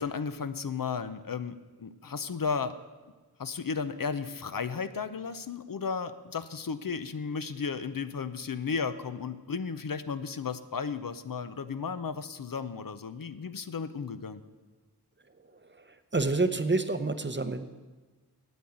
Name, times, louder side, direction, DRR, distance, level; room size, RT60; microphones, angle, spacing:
voice 1, 0.0-2.8 3.4-14.4, left 5 dB, 60° left, 11 dB, 0.6 m, -34 dB
voice 2, 16.1-17.6, right 3 dB, 30° right, 10 dB, 0.7 m, -28 dB
9.4 x 7.8 x 8.6 m, 1.3 s
wide cardioid pair, 50°, 39 cm